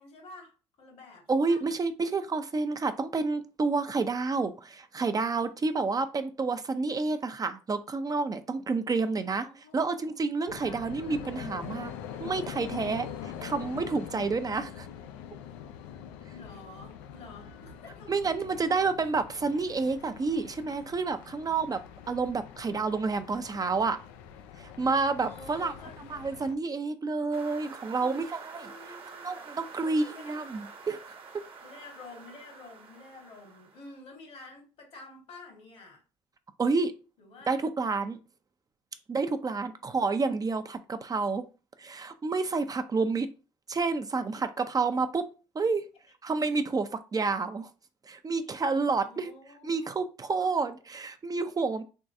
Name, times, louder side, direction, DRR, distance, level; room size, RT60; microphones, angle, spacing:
voice 1, 0.0-1.6 9.0-9.9 10.6-11.3 16.3-18.6 25.2-26.5 28.0-28.3 28.6-29.2 29.8-30.4 31.6-36.0 37.2-37.6 38.9-39.0 39.8-40.1 48.3-48.4 48.9-49.9 50.3-50.5, left 3 dB, 65° left, 1.6 m, -50 dB
voice 2, 1.3-9.5 9.7-11.9 12.2-14.9 18.1-21.8 22.1-24.0 24.6-25.7 26.1-28.7 29.2-31.0 36.6-36.9 37.5-38.2 39.1-41.4 41.8-43.3 43.7-45.2 45.6-45.8 46.2-47.7 48.1-49.3 49.6-51.8, right 4 dB, 30° right, 0.5 m, -29 dB
sound 1, 10.5-26.5, left 9 dB, 90° left, 0.4 m, -44 dB
sound 2, 27.3-34.0, right 5 dB, 50° right, 1.1 m, -48 dB
3.6 x 3.1 x 2.6 m
supercardioid pair, 60°, 12 cm